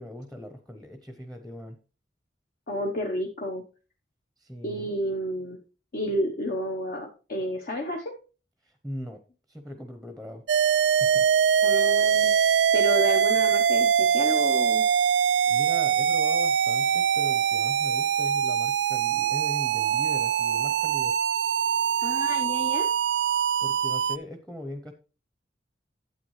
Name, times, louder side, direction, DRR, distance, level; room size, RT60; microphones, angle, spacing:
voice 1, 0.0-1.8 4.4-4.9 8.6-9.2 9.5-10.4 11.0-11.3 15.5-21.2 23.6-24.9, equal, ahead, 7 dB, 0.7 m, -40 dB
voice 2, 2.7-3.6 4.6-5.6 5.9-8.1 11.6-12.3 12.7-14.8 22.0-22.9, equal, 55° left, 0 dB, 0.9 m, -30 dB
sound 1, 10.5-24.2, right 8 dB, 70° right, 0.3 m, -23 dB
9.1 x 8.3 x 3.1 m, 0.34 s
head